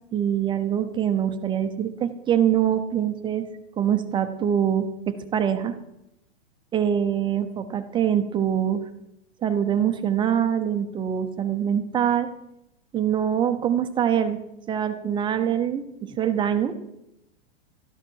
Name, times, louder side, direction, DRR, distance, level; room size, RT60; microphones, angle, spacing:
voice 1, 0.1-3.5 3.8-5.7 6.7-8.8 9.4-12.3 12.9-14.4 14.7-16.7, right 9 dB, 15° right, 9 dB, 0.7 m, -24 dB
12.5 x 12.0 x 4.6 m, 0.85 s
supercardioid pair, 150°, 33 cm